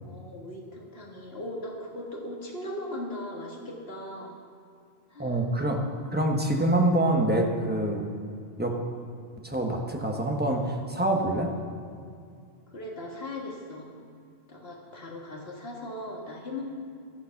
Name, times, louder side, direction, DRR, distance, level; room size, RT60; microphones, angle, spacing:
voice 1, 0.0-4.4 5.1-5.4 5.8-6.2 12.7-13.8 14.5-16.6, left 1 dB, 70° left, -1 dB, 2.1 m, -38 dB
voice 2, 5.2-5.8 6.1-8.0 8.6-8.7 9.4-11.5, right 1 dB, 10° right, 1 dB, 1.2 m, -25 dB
13.0 x 10.5 x 5.9 m, 2.3 s
omnidirectional pair, 1.1 m